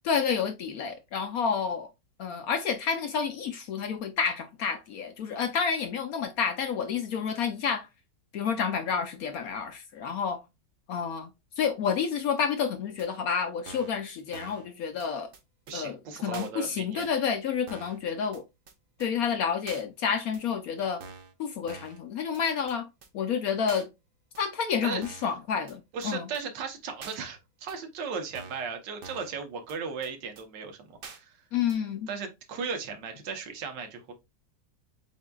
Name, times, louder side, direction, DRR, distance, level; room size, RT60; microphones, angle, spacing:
voice 1, 0.0-1.9 2.2-7.9 8.3-10.4 10.9-15.3 15.7-18.4 19.0-21.0 21.4-22.9 23.1-23.9 24.4-26.3 31.5-32.1, left 6 dB, 70° left, 0.9 m, -29 dB
sound 1, 13.0-13.1 13.7-14.0 14.3-14.7 15.0-15.1 15.3-15.4 15.7-15.8 16.3-16.5 17.0-17.1 17.7-18.0 18.3-18.4 18.7-18.8 19.0-19.1 19.7-19.8 20.3-20.4 21.0-21.3 21.7-22.0 22.3-22.4 22.7-22.8 23.0-23.1 23.7-23.8 24.3-24.4 25.0-25.3 25.7-25.8 26.0-26.1 26.3-26.4 27.0-27.2 27.7-27.8 28.3-28.7 29.0-29.3 29.7-29.8 30.0-30.1 30.4-30.5 31.0-31.2 31.7-31.8, right 4 dB, 65° right, 0.5 m, -45 dB
voice 2, 15.7-17.1 24.8-25.0 25.9-31.3 32.1-34.1, right 5 dB, 80° right, 1.6 m, -36 dB
8.0 x 2.7 x 2.3 m
omnidirectional pair, 1.9 m